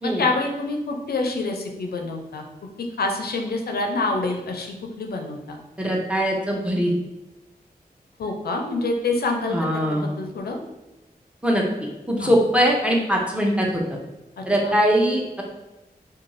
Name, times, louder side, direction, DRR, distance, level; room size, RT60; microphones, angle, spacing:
voice 1, 0.0-2.4 2.8-5.6 8.2-10.6 12.2-12.3 14.4-14.8, left 3 dB, 85° left, 3 dB, 0.4 m, -27 dB
voice 2, 5.8-6.9 9.5-10.1 11.4-11.6 12.1-13.8 14.5-15.4, equal, 5° right, -1 dB, 0.6 m, -21 dB
2.6 x 2.2 x 3.0 m, 1.0 s
wide cardioid pair, 70°, 16 cm